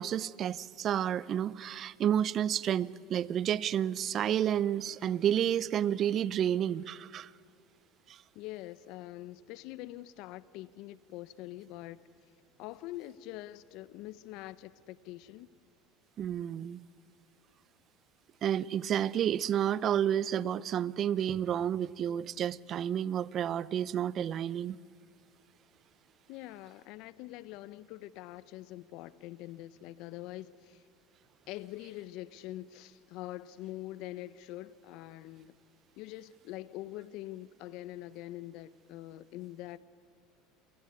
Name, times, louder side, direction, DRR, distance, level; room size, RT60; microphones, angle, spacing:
voice 1, 0.0-7.3 8.1-8.2 16.2-16.8 18.4-24.8, right 10 dB, 45° right, 0.7 m, -30 dB
voice 2, 8.3-12.0 12.6-15.5 26.3-30.9 31.5-35.6 36.0-39.8, left 15 dB, 65° left, 0.8 m, -44 dB
28.5 x 21.5 x 9.6 m
hypercardioid pair, 95°, 0 cm